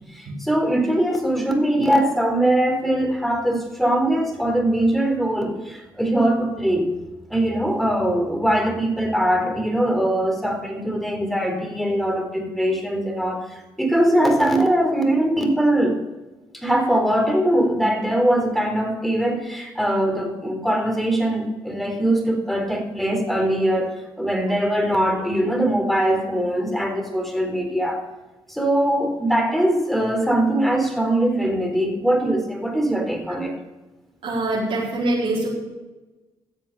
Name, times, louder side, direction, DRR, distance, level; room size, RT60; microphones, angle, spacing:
voice 1, 0.1-6.9 7.3-16.0 16.5-23.9 24.2-28.0 28.5-33.5, right 1 dB, ahead, 3 dB, 4.0 m, -21 dB
voice 2, 34.2-35.5, right 2 dB, 70° right, -7 dB, 4.6 m, -24 dB
14.0 x 7.6 x 6.8 m, 1.1 s
supercardioid pair, 55°, 10 cm